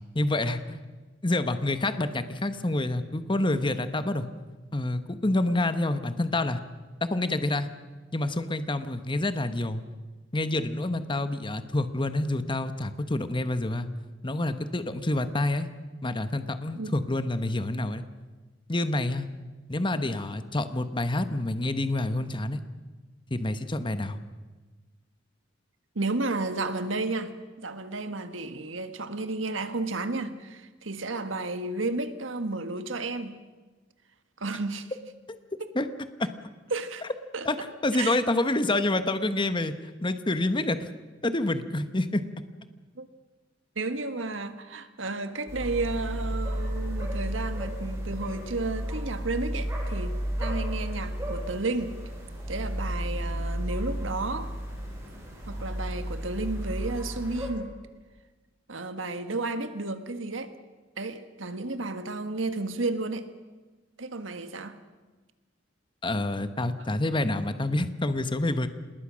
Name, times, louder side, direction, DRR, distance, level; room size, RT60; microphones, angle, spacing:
voice 1, 0.1-0.8 1.2-4.3 4.7-6.6 7.0-7.7 8.1-9.8 10.3-13.9 14.2-15.7 16.0-18.0 18.7-19.3 19.7-22.6 23.3-24.2 35.3-35.4 35.7-35.9 36.2-36.3 37.4-37.6 37.8-39.7 40.0-40.9 41.2-42.2 66.0-68.7, left 2 dB, 25° left, 11 dB, 1.1 m, -27 dB
voice 2, 25.9-33.4 34.4-34.9 35.6-35.7 36.7-37.0 37.3-37.5 37.9-38.2 43.0-43.1 43.7-51.9 52.5-54.5 55.5-57.7 58.7-60.5 61.0-63.2 64.0-64.7, right 3 dB, 80° right, 10 dB, 1.7 m, -32 dB
sound 1, 45.5-57.5, equal, 15° right, 6.9 m, -33 dB
27.0 x 20.5 x 6.4 m, 1.3 s
head